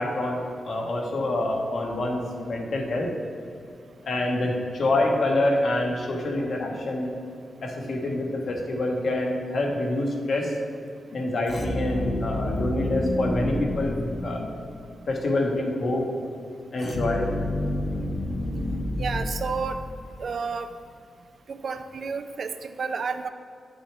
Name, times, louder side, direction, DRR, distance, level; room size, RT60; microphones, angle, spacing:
voice 1, 0.0-3.1 4.0-7.1 7.6-10.5 11.1-13.9 14.2-14.5 15.1-16.1 16.7-17.3, left 2 dB, 60° left, 0 dB, 1.2 m, -26 dB
sound 1, 11.4-14.8 16.8-20.1, left 1 dB, 45° left, 0.8 m, -29 dB
voice 2, 19.0-19.8 20.2-20.7 21.5-23.3, right 5 dB, 55° right, 9 dB, 0.4 m, -31 dB
9.0 x 6.2 x 3.4 m, 2.5 s
wide cardioid pair, 125°, 0 cm